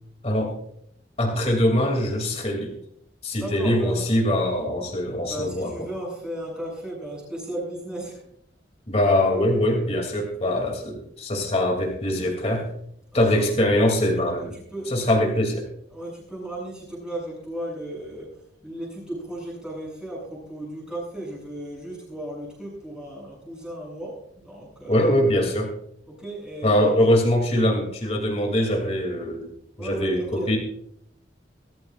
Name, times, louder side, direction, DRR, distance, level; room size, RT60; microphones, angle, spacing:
voice 1, 0.2-0.5 1.2-2.7 3.2-5.7 8.9-12.7 13.1-14.5 14.9-15.5 24.9-25.7 26.6-29.5 29.8-30.6, left 1 dB, 35° left, 1 dB, 2.8 m, -22 dB
voice 2, 3.4-4.2 5.3-8.3 13.1-13.4 14.5-15.4 15.9-25.1 26.1-27.3 29.8-30.6, right 1 dB, 5° right, -3 dB, 7.6 m, -35 dB
23.0 x 14.0 x 2.5 m, 0.70 s
head